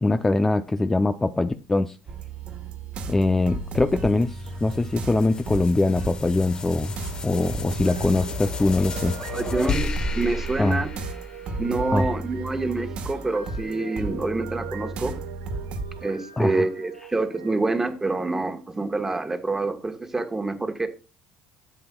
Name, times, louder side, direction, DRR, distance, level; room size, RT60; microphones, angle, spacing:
voice 1, 0.0-2.0 3.1-6.9 7.2-9.4 10.6-10.8 11.9-12.2 16.4-16.6, left 2 dB, 15° left, 0.5 m, -23 dB
sound 1, 2.1-16.1, right 2 dB, 55° right, 1.4 m, -35 dB
sound 2, 3.3-11.9, left 3 dB, 40° left, 1.0 m, -34 dB
sound 3, 6.6-18.7, right 11 dB, 90° right, 0.9 m, -43 dB
voice 2, 9.3-10.9 11.6-15.2 16.0-20.9, right 3 dB, 15° right, 1.3 m, -27 dB
11.0 x 7.8 x 2.3 m
hypercardioid pair, 75°, 2 cm